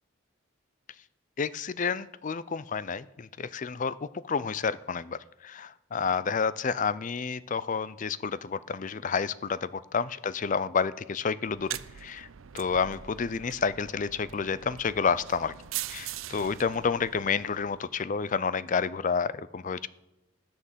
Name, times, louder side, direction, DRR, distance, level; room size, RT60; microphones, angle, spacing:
voice 1, 1.4-12.3 12.5-15.5 15.9-19.9, left 5 dB, 40° left, 17 dB, 0.4 m, -30 dB
sound 1, 11.5-17.9, right 12 dB, 80° right, 0.5 m, -42 dB
13.5 x 10.0 x 7.4 m, 0.97 s
head